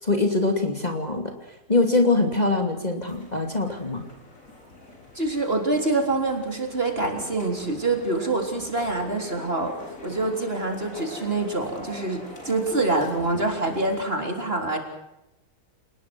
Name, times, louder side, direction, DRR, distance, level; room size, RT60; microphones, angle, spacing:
voice 1, 0.0-1.3 1.7-4.0, left 3 dB, 25° left, 4 dB, 2.9 m, -23 dB
sound 1, 3.1-14.0, left 1 dB, 55° left, 5.5 m, -43 dB
voice 2, 5.2-9.7 10.0-14.8, right 2 dB, 35° right, 4 dB, 4.0 m, -26 dB
28.5 x 19.5 x 6.2 m, 0.91 s
omnidirectional pair, 1.7 m